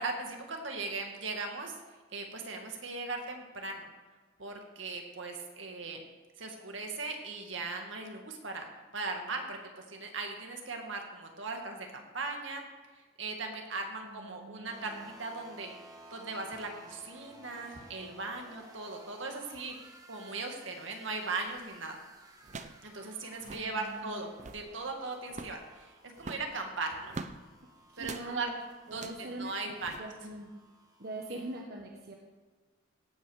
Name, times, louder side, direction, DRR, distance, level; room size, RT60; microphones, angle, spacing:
voice 1, 0.0-1.8 2.1-3.9 4.4-6.0 6.4-8.7 8.9-12.6 12.9-15.8 16.1-22.0 22.8-27.1 28.0-28.5 28.9-30.1 31.3-31.4, right 3 dB, 75° right, 3 dB, 2.1 m, -39 dB
voice 2, 14.0-15.1 23.4-24.3 26.3-26.4 27.9-28.5 28.9-30.5 31.0-32.1, right 1 dB, 55° right, 0 dB, 1.3 m, -43 dB
sound 1, 14.7-31.6, right 1 dB, 20° right, 1.4 m, -56 dB
sound 2, 21.5-21.7 22.4-22.9 23.1-23.2 23.4-23.7 24.2-24.7 25.3-25.6 26.2-27.4 28.0-28.3 28.9-29.3 29.8-30.0, right 3 dB, 35° right, 0.6 m, -43 dB
17.0 x 6.2 x 6.6 m, 1.4 s
head